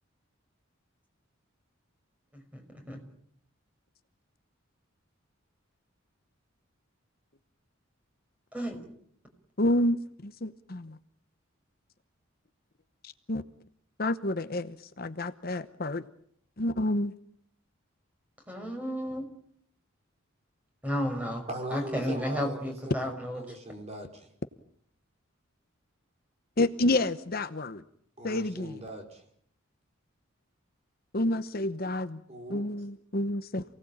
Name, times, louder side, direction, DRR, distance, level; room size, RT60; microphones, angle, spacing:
voice 1, 2.3-3.0 8.5-8.8 18.5-19.3 20.8-21.4 21.7-23.6, equal, 5° right, 4 dB, 5.6 m, -33 dB
voice 2, 9.6-11.0 13.0-13.4 14.0-16.0 16.6-17.1 26.6-27.8 28.2-28.8 31.1-32.2 32.5-33.6, left 1 dB, 45° left, 11 dB, 0.9 m, -29 dB
voice 3, 21.5-24.3 28.2-29.2 32.3-32.7, right 1 dB, 30° right, 4 dB, 4.6 m, -40 dB
28.0 x 18.5 x 8.8 m, 0.67 s
head